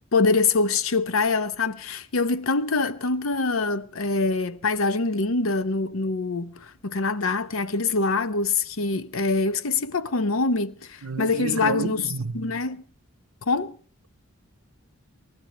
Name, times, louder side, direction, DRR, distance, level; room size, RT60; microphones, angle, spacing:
voice 1, 0.1-12.0 12.3-12.8 13.5-13.8, left 3 dB, 75° left, 0.8 m, -24 dB
voice 2, 11.0-12.5, right 5 dB, 80° right, 0.7 m, -31 dB
29.0 x 14.0 x 3.3 m
head